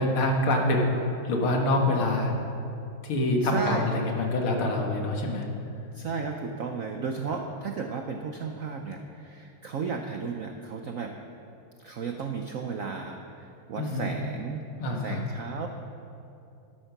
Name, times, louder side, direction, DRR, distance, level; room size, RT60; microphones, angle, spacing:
voice 1, 0.0-2.3 3.0-5.5 7.3-7.4 13.8-14.1 14.8-15.2, left 1 dB, 80° left, 1 dB, 2.4 m, -26 dB
voice 2, 3.4-3.9 5.9-11.1 11.8-14.6 15.0-15.7, right 5 dB, 75° right, 4 dB, 0.7 m, -34 dB
12.0 x 11.0 x 5.9 m, 2.6 s
omnidirectional pair, 2.3 m